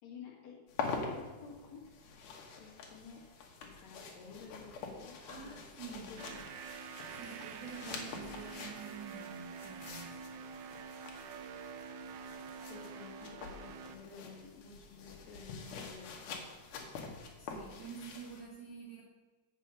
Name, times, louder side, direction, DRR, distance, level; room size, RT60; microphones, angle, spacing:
voice 1, 0.0-1.8 2.6-3.2 3.6-6.5 7.8-8.0 12.7-16.5, left 5 dB, 60° left, -2 dB, 2.8 m, -52 dB
sound 1, 0.7-18.4, left 4 dB, 80° left, 2.7 m, -46 dB
voice 2, 5.3-6.2 7.1-10.2 17.4-19.0, right 6 dB, 60° right, -2 dB, 1.2 m, -48 dB
sound 2, 6.2-14.0, right 6 dB, 80° right, 2.1 m, -47 dB
8.3 x 5.5 x 6.7 m, 1.3 s
omnidirectional pair, 3.6 m